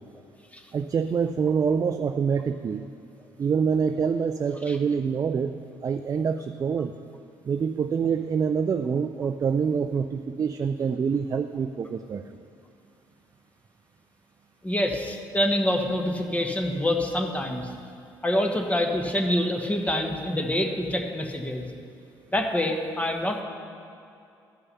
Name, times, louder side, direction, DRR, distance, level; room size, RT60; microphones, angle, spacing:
voice 1, 0.7-2.8 3.4-5.5 5.8-6.9 7.4-12.3, right 6 dB, 35° right, 9 dB, 0.4 m, -26 dB
voice 2, 14.6-17.7 18.2-21.6 22.3-23.4, left 1 dB, 15° left, 3 dB, 1.2 m, -26 dB
12.5 x 5.5 x 5.5 m, 2.6 s
supercardioid pair, 65°, 10 cm